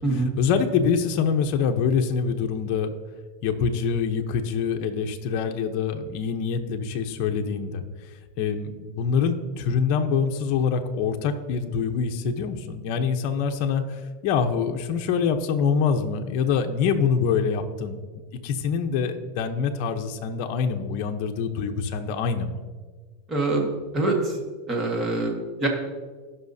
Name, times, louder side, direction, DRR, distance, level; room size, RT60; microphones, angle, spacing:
voice 1, 0.1-3.0 3.4-7.8 8.4-18.0 18.4-22.6, left 6 dB, 50° left, 4 dB, 0.8 m, -25 dB
voice 2, 23.3-24.4 24.7-25.7, right 2 dB, 20° right, 1 dB, 1.6 m, -25 dB
17.0 x 5.7 x 2.7 m, 1.5 s
supercardioid pair, 155°, 0 cm